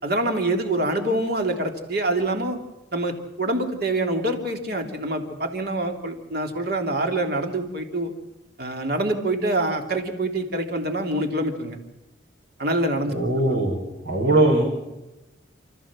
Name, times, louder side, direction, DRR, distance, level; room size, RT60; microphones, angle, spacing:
voice 1, 0.0-2.6 2.9-8.1 8.6-11.8 12.6-13.5, right 1 dB, 55° right, 3 dB, 3.2 m, -25 dB
voice 2, 13.1-14.6, right 2 dB, 80° right, -5 dB, 6.7 m, -21 dB
29.5 x 14.5 x 7.6 m, 1.0 s
head